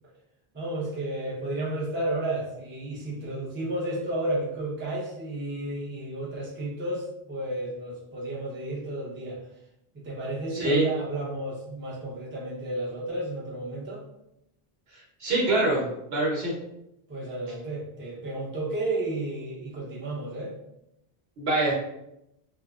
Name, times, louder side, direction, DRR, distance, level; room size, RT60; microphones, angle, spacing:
voice 1, 0.5-9.4 9.9-14.0 17.1-20.5, right 1 dB, 15° right, -6 dB, 0.5 m, -32 dB
voice 2, 10.5-10.8 14.9-15.9 16.1-16.5 21.4-21.7, right 2 dB, 75° right, -5 dB, 1.2 m, -24 dB
2.8 x 2.3 x 2.3 m, 0.84 s
omnidirectional pair, 1.0 m